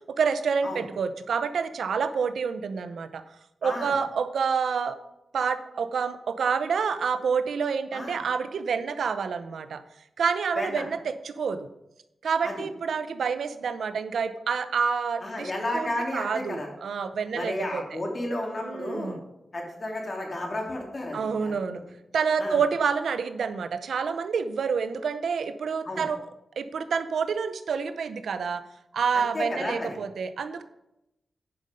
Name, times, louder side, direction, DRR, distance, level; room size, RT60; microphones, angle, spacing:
voice 1, 0.1-3.2 3.6-5.0 5.3-9.8 10.2-11.7 12.2-17.8 18.6-19.2 21.1-21.8 22.1-26.2 26.6-28.6 28.9-30.6, right 6 dB, 85° right, 11 dB, 0.6 m, -28 dB
voice 2, 3.6-3.9 7.9-8.2 10.5-10.8 12.4-12.7 15.2-16.7 17.3-19.2 19.5-21.5 22.4-22.6 25.8-26.0 29.1-30.0, left 1 dB, 45° left, 0 dB, 2.8 m, -32 dB
10.5 x 5.4 x 5.0 m, 0.88 s
cardioid pair, 70°, 0 cm